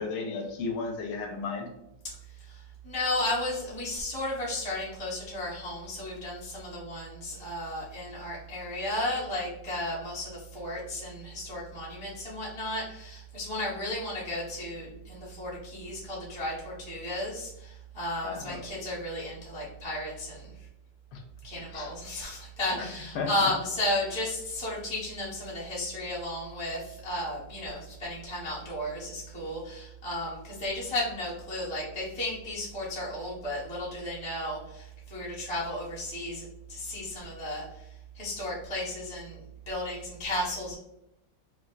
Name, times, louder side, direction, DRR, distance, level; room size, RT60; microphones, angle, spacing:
voice 1, 0.0-1.7 18.2-18.6 21.1-21.2 21.7-21.9 22.8-22.9 23.1-23.3, left 4 dB, 80° left, 2 dB, 1.2 m, -34 dB
voice 2, 2.4-20.5 21.4-37.6 38.1-40.7, left 1 dB, 10° left, -7 dB, 0.4 m, -34 dB
3.2 x 2.4 x 2.4 m, 0.84 s
omnidirectional pair, 2.0 m